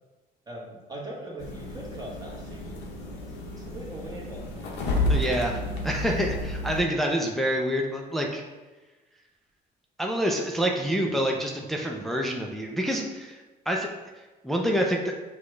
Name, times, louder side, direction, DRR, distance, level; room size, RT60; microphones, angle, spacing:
voice 1, 0.5-4.7, right 1 dB, 25° right, -3 dB, 1.2 m, -41 dB
sound 1, 1.4-6.8, left 1 dB, 85° left, 0.8 m, -31 dB
voice 2, 5.1-8.4 10.0-13.4 13.7-13.9 14.2-15.1, equal, ahead, 0 dB, 0.4 m, -27 dB
6.0 x 2.3 x 3.2 m, 1.2 s
cardioid pair, 110°, 17 cm